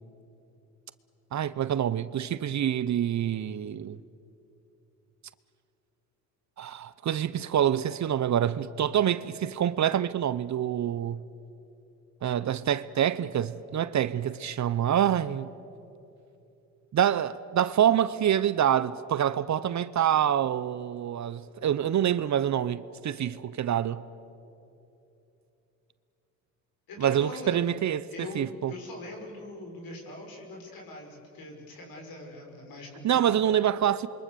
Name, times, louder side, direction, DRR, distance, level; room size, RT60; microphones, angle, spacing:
voice 1, 1.3-4.0 6.6-11.2 12.2-15.5 16.9-24.0 27.0-28.7 33.0-34.1, right 10 dB, 45° right, 0.8 m, -26 dB
voice 2, 26.9-27.7 28.1-33.4, left 2 dB, 65° left, 6.1 m, -42 dB
27.5 x 23.0 x 7.0 m
supercardioid pair, 70°, 39 cm